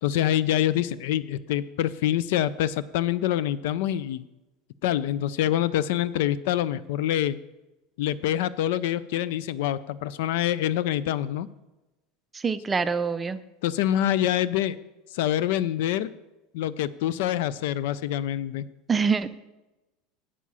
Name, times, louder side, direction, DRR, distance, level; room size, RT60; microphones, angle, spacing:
voice 1, 0.0-4.3 4.8-7.4 8.0-11.5 13.6-14.8 15.1-16.1 16.5-18.6, left 12 dB, 75° left, 18 dB, 0.4 m, -26 dB
voice 2, 12.3-13.4 18.9-19.4, right 5 dB, 15° right, 12 dB, 0.4 m, -25 dB
8.4 x 7.4 x 5.5 m, 1.0 s
supercardioid pair, 135°, 0 cm